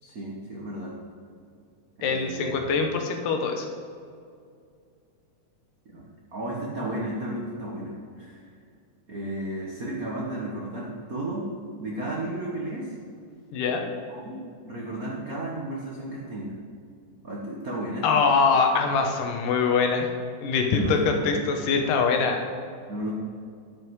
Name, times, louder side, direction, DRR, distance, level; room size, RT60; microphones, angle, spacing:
voice 1, 0.0-0.9 2.0-2.6 5.9-8.5 9.1-11.5 11.8-12.9 14.1-16.5 17.2-18.2 20.7-21.6 22.9-23.1, right 1 dB, 90° right, -4 dB, 0.7 m, -33 dB
voice 2, 2.0-3.7 13.5-13.9 18.0-20.1 20.4-22.4, left 5 dB, 90° left, 4 dB, 2.7 m, -23 dB
10.5 x 8.0 x 4.7 m, 2.3 s
omnidirectional pair, 3.7 m